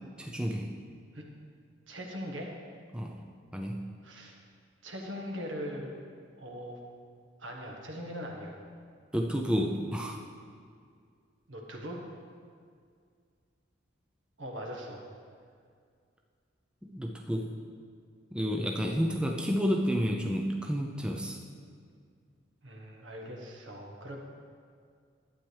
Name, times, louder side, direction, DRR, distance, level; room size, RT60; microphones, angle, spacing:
voice 1, 0.2-0.7 2.9-3.2 3.5-3.9 9.1-10.2 16.8-17.6 18.3-21.4, equal, 5° right, 1 dB, 0.4 m, -30 dB
voice 2, 1.9-2.5 4.0-4.3 4.8-5.9 6.4-6.8 7.4-8.6 11.5-12.0 14.4-15.0 22.6-24.2, equal, 75° right, 0 dB, 1.3 m, -40 dB
11.5 x 8.6 x 3.3 m, 2.2 s
head